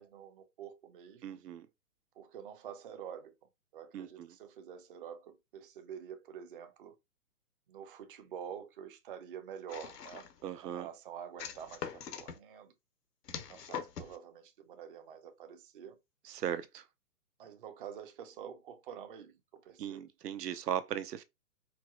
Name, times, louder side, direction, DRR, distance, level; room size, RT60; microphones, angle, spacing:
voice 1, 0.0-1.4 2.2-3.3 3.7-7.0 7.7-10.3 10.6-12.7 13.5-16.0 17.4-20.0, right 8 dB, 35° right, 0.5 m, -47 dB
voice 2, 1.2-1.7 3.9-4.3 10.4-10.9 16.2-16.8 19.8-21.2, right 10 dB, 80° right, 0.7 m, -38 dB
sound 1, 9.7-10.4 11.4-12.4 13.3-14.2, left 7 dB, 80° left, 0.9 m, -42 dB
4.6 x 2.0 x 2.3 m
hypercardioid pair, 140°, 47 cm